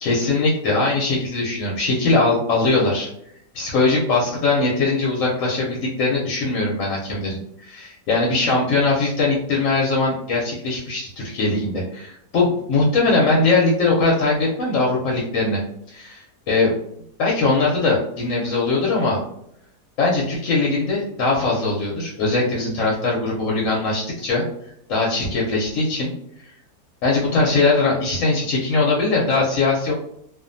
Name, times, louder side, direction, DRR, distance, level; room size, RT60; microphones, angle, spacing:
voice 1, 0.0-3.1 3.5-15.6 15.9-16.7 17.2-19.2 20.0-24.4 24.9-26.1 27.0-29.9, left 3 dB, 65° left, -3 dB, 0.8 m, -21 dB
2.6 x 2.3 x 2.5 m, 0.73 s
omnidirectional pair, 1.8 m